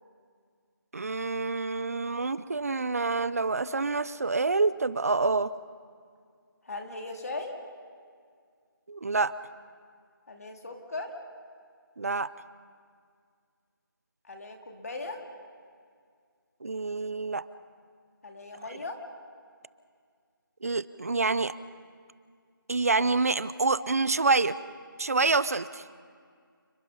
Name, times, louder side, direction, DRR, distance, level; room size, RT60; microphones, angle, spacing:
voice 1, 0.9-5.5 8.9-9.3 12.0-12.3 16.6-17.5 20.6-21.6 22.7-24.6 25.0-25.8, right 3 dB, 45° right, 17 dB, 0.6 m, -27 dB
voice 2, 6.6-7.6 10.3-11.2 14.2-15.2 18.2-19.0, left 2 dB, 45° left, 3 dB, 2.4 m, -38 dB
29.5 x 21.0 x 5.4 m, 2.1 s
figure-of-eight pair, 170°, 12 cm